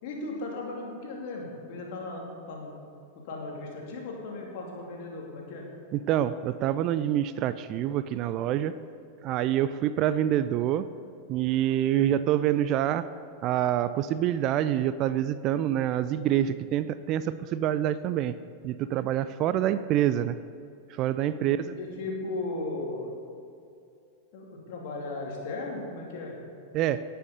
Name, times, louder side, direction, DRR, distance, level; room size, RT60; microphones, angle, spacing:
voice 1, 0.0-2.7 3.1-5.7 11.9-12.0 21.3-23.2 24.3-26.3, left 2 dB, 50° left, -1 dB, 2.8 m, -36 dB
voice 2, 5.9-8.7 9.2-10.8 11.3-13.1 13.4-18.3 18.6-20.4 20.9-21.7 26.7-27.0, right 11 dB, 40° right, 14 dB, 0.4 m, -26 dB
18.0 x 6.9 x 5.2 m, 2.4 s
figure-of-eight pair, 90°, 0 cm